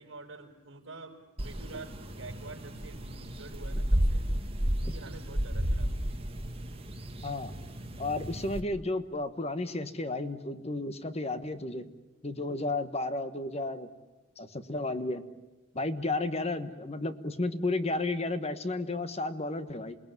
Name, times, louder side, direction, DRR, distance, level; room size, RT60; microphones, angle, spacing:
voice 1, 0.0-4.3 4.8-6.2, right 3 dB, 65° right, 3 dB, 5.0 m, -47 dB
sound 1, 1.4-8.6, equal, 30° right, 1.9 m, -32 dB
voice 2, 8.0-11.9 12.2-13.9 14.4-15.2 15.7-19.9, left 2 dB, 30° left, 10 dB, 1.3 m, -32 dB
28.5 x 20.0 x 9.4 m, 1.1 s
head